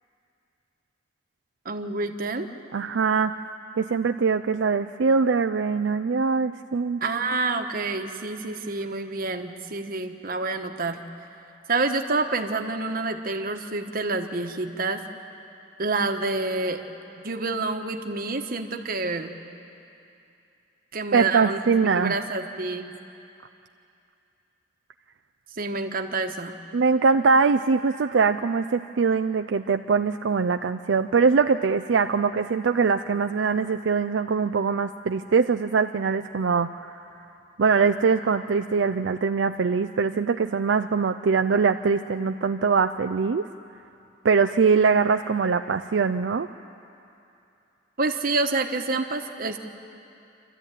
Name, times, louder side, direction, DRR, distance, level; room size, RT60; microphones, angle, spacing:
voice 1, 1.6-2.5 7.0-11.0 11.7-15.0 15.8-16.8 17.1-19.3 20.9-22.9 25.6-26.6 48.0-49.6, right 3 dB, 50° right, 5 dB, 1.3 m, -28 dB
voice 2, 2.7-3.3 3.8-7.0 21.1-22.1 26.7-36.9 37.6-43.4 44.2-46.5, right 5 dB, 80° right, 8 dB, 0.5 m, -22 dB
27.5 x 13.0 x 9.1 m, 2.7 s
head